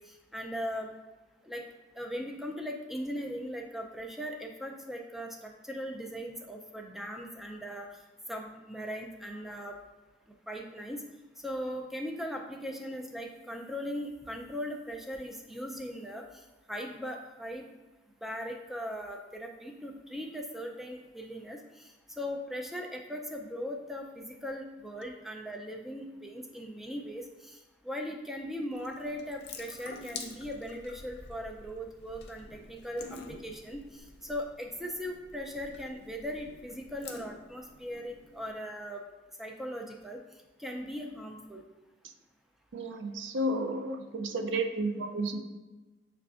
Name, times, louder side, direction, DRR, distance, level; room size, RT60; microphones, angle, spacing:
voice 1, 0.3-0.9 1.4-1.6 2.0-7.9 8.3-9.8 10.5-11.0 11.4-16.2 16.7-17.7 18.2-21.6 22.2-27.6 27.8-39.0 39.4-40.2 40.6-41.6, equal, ahead, 1 dB, 0.3 m, -39 dB
Water tap faucet / Sink (filling or washing) / Drip, 28.7-38.5, left 4 dB, 60° left, 0.4 m, -48 dB
voice 2, 42.7-45.4, right 1 dB, 75° right, 6 dB, 0.4 m, -32 dB
6.6 x 2.4 x 2.4 m, 1.2 s
head